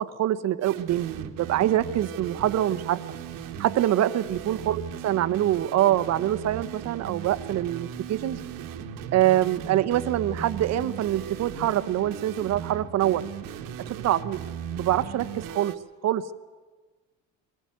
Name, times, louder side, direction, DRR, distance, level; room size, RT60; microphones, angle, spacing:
voice 1, 0.0-3.0 3.6-8.4 9.1-13.2 14.0-15.7 16.0-16.3, right 12 dB, 55° right, 12 dB, 0.9 m, -25 dB
sound 1, 0.6-15.8, right 8 dB, 75° right, 1.4 m, -37 dB
22.5 x 15.0 x 9.5 m, 1.3 s
cardioid pair, 115°, 32 cm